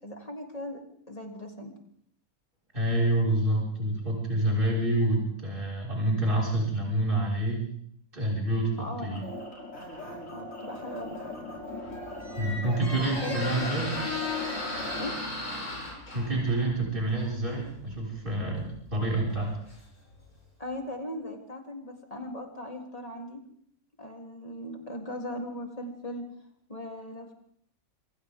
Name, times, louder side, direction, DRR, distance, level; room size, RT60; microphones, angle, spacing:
voice 1, 0.0-0.8 1.1-1.7 8.8-9.4 10.3-11.2 13.0-14.1 14.9-15.2 20.6-23.4 24.0-26.3 26.7-27.3, left 1 dB, 25° left, 1 dB, 3.6 m, -38 dB
voice 2, 2.7-7.6 8.1-8.7 9.0-9.2 12.4-13.9 16.1-18.6 18.9-19.5, right 1 dB, 35° right, -3 dB, 6.1 m, -27 dB
sound 1, 9.1-15.1, left 1 dB, 65° left, 6.2 m, -40 dB
Squeak, 11.6-20.3, left 2 dB, 85° left, 7.4 m, -37 dB
27.5 x 26.0 x 3.8 m, 0.65 s
omnidirectional pair, 1.5 m